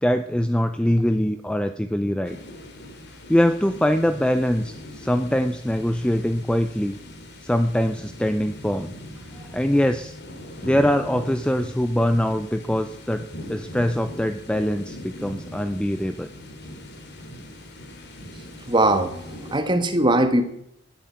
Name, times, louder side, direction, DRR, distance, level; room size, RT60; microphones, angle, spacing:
voice 1, 0.0-2.4 3.3-7.0 7.4-8.9 9.5-10.1 10.6-16.3, equal, 5° left, 8 dB, 0.5 m, -23 dB
sound 1, 2.2-19.6, left 1 dB, 50° left, 2.8 m, -40 dB
voice 2, 18.7-20.4, right 1 dB, 20° right, 8 dB, 1.5 m, -20 dB
12.5 x 10.5 x 8.6 m, 0.75 s
head